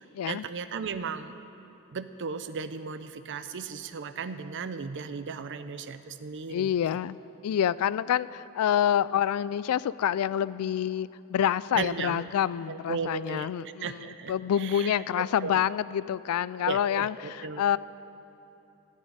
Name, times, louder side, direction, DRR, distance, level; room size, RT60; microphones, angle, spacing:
voice 1, 0.0-1.4 1.9-6.7 11.7-12.3 12.7-13.5 13.8-15.6 16.7-17.8, right 5 dB, 55° right, 11 dB, 0.6 m, -36 dB
voice 2, 6.5-7.2 7.4-14.0 14.3-17.8, left 9 dB, 70° left, 17 dB, 0.3 m, -27 dB
13.5 x 6.5 x 9.5 m, 2.9 s
head